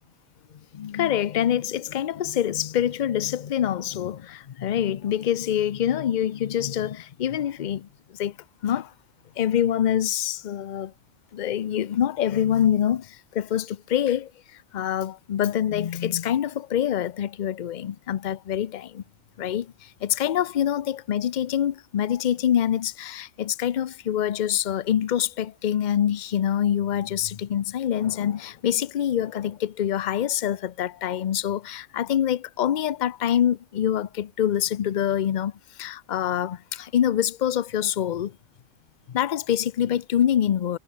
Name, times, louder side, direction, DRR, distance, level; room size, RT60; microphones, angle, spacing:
voice 1, 0.7-8.4 8.6-8.9 9.4-10.9 11.3-14.3 14.7-19.0 19.4-38.4 39.1-40.8, left 10 dB, 55° left, 0.5 m, -25 dB
omnidirectional pair, 1.4 m